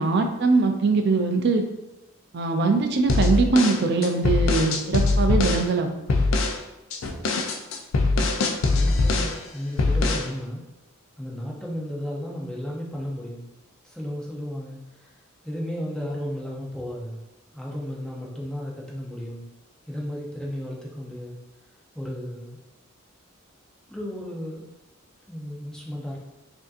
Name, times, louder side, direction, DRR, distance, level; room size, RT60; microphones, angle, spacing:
voice 1, 0.0-1.6 2.3-5.9, right 3 dB, 50° right, 5 dB, 0.4 m, -22 dB
sound 1, 3.1-5.7 6.1-6.6 6.9-9.4 9.8-10.3, left 3 dB, 70° left, 0.4 m, -22 dB
voice 2, 8.1-10.6 11.2-13.4 13.8-15.1 15.4-17.2 17.5-19.4 19.9-21.4 21.9-22.6 23.9-24.7 25.3-26.2, equal, 5° left, -3 dB, 0.6 m, -34 dB
4.9 x 2.7 x 2.5 m, 0.98 s
head